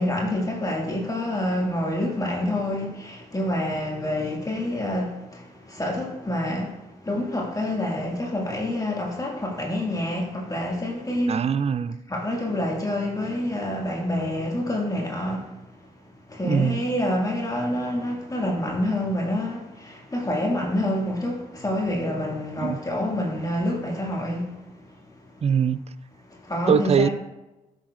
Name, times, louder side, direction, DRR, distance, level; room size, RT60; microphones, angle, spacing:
voice 1, 0.0-11.5 12.1-15.5 16.3-24.8 25.4-25.5 26.3-27.1, left 1 dB, 20° left, 2.1 m, -27 dB
voice 2, 11.3-12.0 16.4-16.8 22.6-22.8 25.4-25.8 26.7-27.1, right 7 dB, 40° right, 0.5 m, -22 dB
13.0 x 6.4 x 2.5 m
hypercardioid pair, 40°, 16 cm